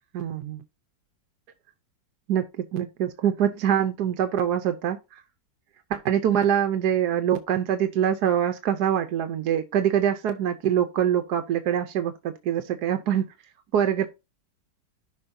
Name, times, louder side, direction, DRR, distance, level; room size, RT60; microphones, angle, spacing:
voice 1, 0.1-0.6 2.3-5.2 5.9-13.3 13.7-14.1, right 9 dB, 70° right, 1.2 m, -24 dB
12.5 x 5.1 x 2.7 m
omnidirectional pair, 1.9 m